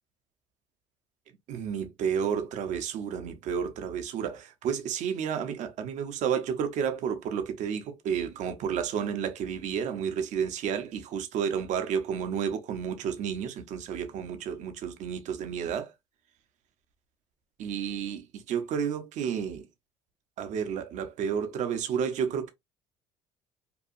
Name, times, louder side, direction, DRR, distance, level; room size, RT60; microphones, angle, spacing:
voice 1, 1.5-15.9 17.6-19.6 20.4-22.5, right 7 dB, 55° right, 0.7 m, -31 dB
2.7 x 2.3 x 2.5 m
hypercardioid pair, 65°, 14 cm